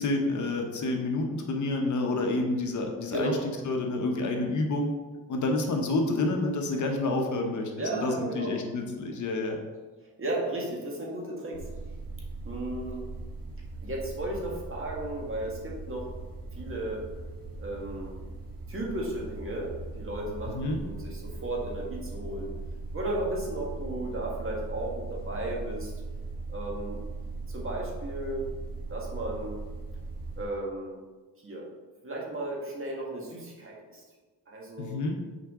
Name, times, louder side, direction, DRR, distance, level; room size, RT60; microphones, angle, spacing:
voice 1, 0.0-3.4 3.7-4.9 5.3-9.6 20.5-20.8 34.8-35.1, left 2 dB, 55° left, 3 dB, 0.9 m, -29 dB
voice 2, 7.8-8.6 10.2-11.6 12.4-13.1 13.8-16.1 16.6-17.0 17.6-18.1 18.7-22.5 22.9-25.9 26.5-27.0 27.5-28.5 28.9-29.6 30.3-31.0 31.4-31.7 32.0-34.0 34.5-35.0, right 1 dB, 35° right, -3 dB, 1.7 m, -34 dB
sound 1, 11.5-30.4, right 3 dB, 70° right, 1.6 m, -39 dB
6.4 x 4.7 x 3.7 m, 1.3 s
cardioid pair, 110°, 36 cm